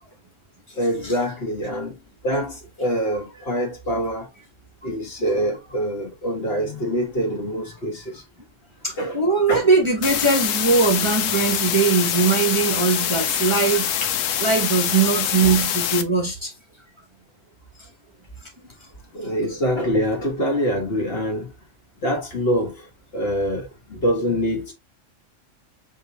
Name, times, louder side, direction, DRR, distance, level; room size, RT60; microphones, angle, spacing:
voice 1, 0.7-4.3 4.8-8.2 9.0-9.7 15.5-15.6 19.1-21.5 22.0-22.9 23.1-24.7, equal, 50° left, 1.6 m, -25 dB
voice 2, 8.8-14.1 14.4-16.5 19.2-19.3, right 4 dB, 25° right, 0.9 m, -20 dB
sound 1, 10.0-16.0, left 10 dB, 85° left, 1.0 m, -24 dB
5.2 x 2.9 x 2.9 m
omnidirectional pair, 1.3 m